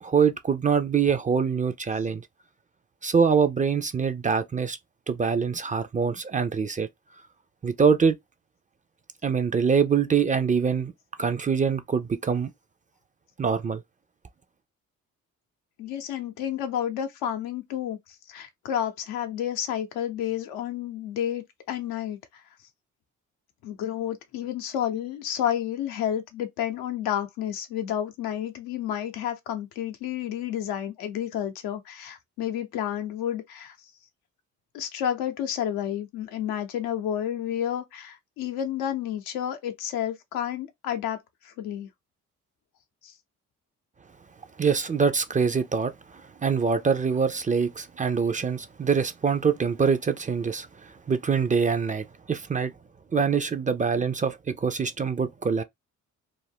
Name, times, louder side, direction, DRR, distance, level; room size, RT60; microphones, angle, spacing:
voice 1, 0.0-2.2 3.0-4.8 5.1-6.9 7.6-8.2 9.2-10.9 11.2-12.5 13.4-13.8 44.6-52.7 53.1-55.6, right 6 dB, 20° right, 0.4 m, -24 dB
voice 2, 15.8-18.0 18.3-22.4 23.6-33.8 34.7-41.9 43.0-43.1, left 10 dB, 80° left, 0.7 m, -30 dB
2.5 x 2.1 x 3.4 m
supercardioid pair, 50°, 35 cm